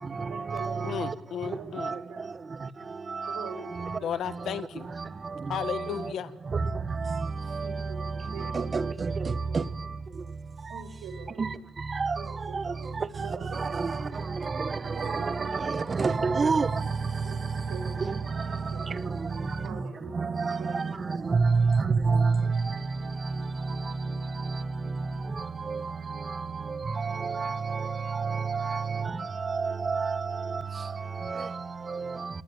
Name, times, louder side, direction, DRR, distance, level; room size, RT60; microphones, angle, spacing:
voice 1, 0.3-0.9 1.6-1.8 2.1-2.3 3.3-4.2 5.9-6.2 7.6-8.9 10.7-11.6 12.2-14.3 14.9-15.8 17.2-17.4 17.7-19.1 19.6-21.0, right 5 dB, 90° right, 6.1 m, -44 dB
voice 2, 0.8-2.0 4.0-4.9 5.5-6.3, left 9 dB, 70° left, 1.6 m, -34 dB
voice 3, 15.7-16.7 20.5-20.6 21.3-21.4 21.7-21.8 22.1-22.3 27.2-27.5 28.2-28.8 29.9-30.1, right 4 dB, 35° right, 1.3 m, -25 dB
29.0 x 19.5 x 9.3 m
cardioid pair, 90°, 0 cm